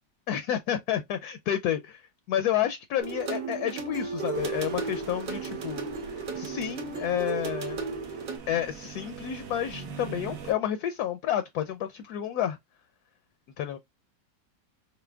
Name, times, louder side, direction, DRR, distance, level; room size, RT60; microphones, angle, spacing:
voice 1, 0.3-2.0 2.3-5.8 6.3-7.8 8.5-12.6 13.6-13.8, left 10 dB, 70° left, 1.0 m, -30 dB
sound 1, 3.0-8.4, right 5 dB, 85° right, 1.8 m, -34 dB
sound 2, 4.3-10.5, right 6 dB, 55° right, 1.1 m, -43 dB
5.7 x 2.1 x 2.2 m
omnidirectional pair, 1.9 m